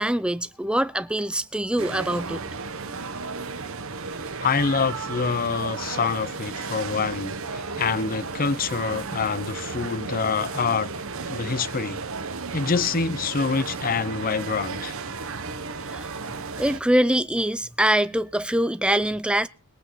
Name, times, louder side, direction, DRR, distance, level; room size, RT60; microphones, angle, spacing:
voice 1, 0.0-2.4 15.9-19.5, right 1 dB, 5° right, 0.7 m, -24 dB
sound 1, 1.8-16.8, right 4 dB, 65° right, 1.4 m, -34 dB
voice 2, 4.4-10.9 11.3-12.0 12.5-14.9, left 5 dB, 40° left, 0.7 m, -26 dB
21.5 x 8.5 x 4.2 m
head